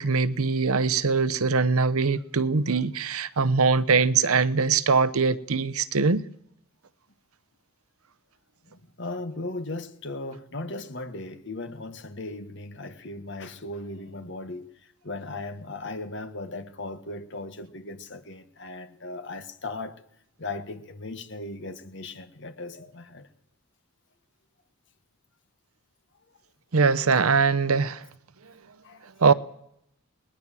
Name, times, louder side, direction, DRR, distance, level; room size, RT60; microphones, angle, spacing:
voice 1, 0.0-6.2 26.7-28.0 29.2-29.3, right 4 dB, 80° right, 0.8 m, -22 dB
voice 2, 8.7-14.6 15.0-20.0 20.4-23.3 28.8-29.0, left 2 dB, 55° left, 1.5 m, -37 dB
20.0 x 19.0 x 7.5 m
head